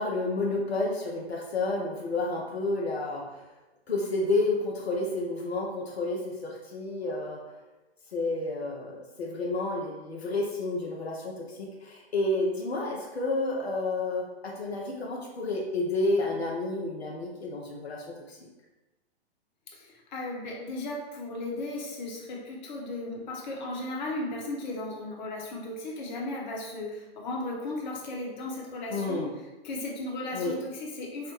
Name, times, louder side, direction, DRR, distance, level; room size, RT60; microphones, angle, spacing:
voice 1, 0.0-3.4 3.9-7.4 8.1-18.5 28.9-29.3 30.3-30.5, left 2 dB, 80° left, -2 dB, 0.7 m, -30 dB
voice 2, 19.7-29.3 29.6-31.3, left 2 dB, 45° left, -2 dB, 0.9 m, -36 dB
4.9 x 2.2 x 2.9 m, 1.1 s
figure-of-eight pair, 115°, 31 cm